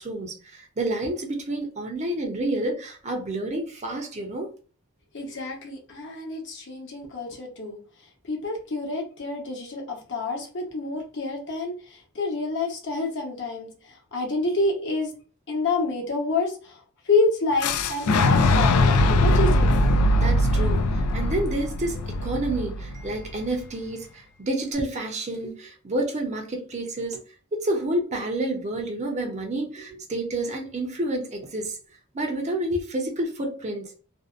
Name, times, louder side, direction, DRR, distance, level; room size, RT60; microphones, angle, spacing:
voice 1, 0.0-4.5 20.1-27.2 27.5-31.8 32.1-33.9, right 1 dB, 30° right, 0.6 m, -29 dB
voice 2, 5.1-7.8 8.3-11.7 12.1-13.7 14.1-15.1 15.5-16.5 17.1-19.7, left 3 dB, 55° left, 0.9 m, -27 dB
Fire / Explosion, 17.6-23.5, left 1 dB, 90° left, 0.3 m, -21 dB
2.6 x 2.1 x 2.4 m
head